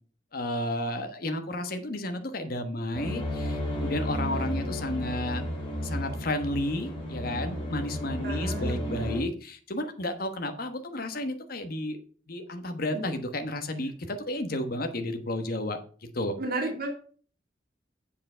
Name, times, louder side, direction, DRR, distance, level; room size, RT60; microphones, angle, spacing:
voice 1, 0.3-5.4 5.8-12.0 12.3-15.8 16.1-16.3, left 1 dB, 55° left, 7 dB, 1.2 m, -32 dB
sound 1, 2.9-9.2, equal, 30° left, 3.1 m, -33 dB
voice 2, 8.2-8.8 12.9-13.1 16.4-16.9, right 2 dB, 55° right, 2 dB, 2.1 m, -32 dB
7.9 x 7.1 x 5.5 m, 0.42 s
head